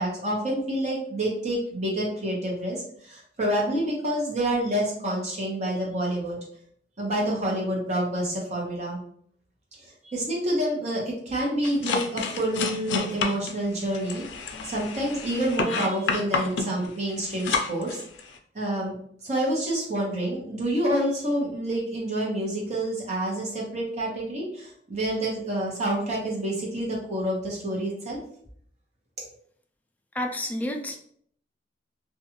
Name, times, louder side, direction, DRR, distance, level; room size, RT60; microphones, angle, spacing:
voice 1, 0.0-6.4 7.0-9.0 9.8-18.0 18.5-18.9 19.2-28.2, right 1 dB, 40° right, -4 dB, 1.0 m, -28 dB
sound 1, 11.6-18.4, left 4 dB, 90° left, 0.4 m, -30 dB
voice 2, 30.2-31.0, left 1 dB, 10° left, 2 dB, 0.3 m, -29 dB
2.5 x 2.3 x 2.9 m, 0.62 s
head